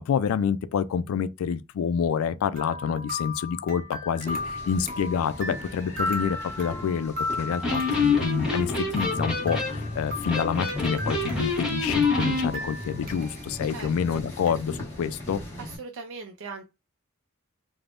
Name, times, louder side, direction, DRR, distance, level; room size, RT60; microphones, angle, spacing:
voice 1, 0.0-15.4, left 7 dB, 70° left, 0.3 m, -28 dB
sound 1, 2.6-11.8 12.0-13.5 13.8-13.9 14.5-14.6, left 2 dB, 45° right, 0.8 m, -35 dB
sound 2, 4.2-15.8, left 1 dB, 10° left, 1.1 m, -40 dB
Electric guitar, 7.6-12.5, left 3 dB, 5° right, 0.9 m, -27 dB
voice 2, 13.7-14.2 15.6-16.6, right 4 dB, 65° right, 0.5 m, -40 dB
3.3 x 2.1 x 2.4 m
head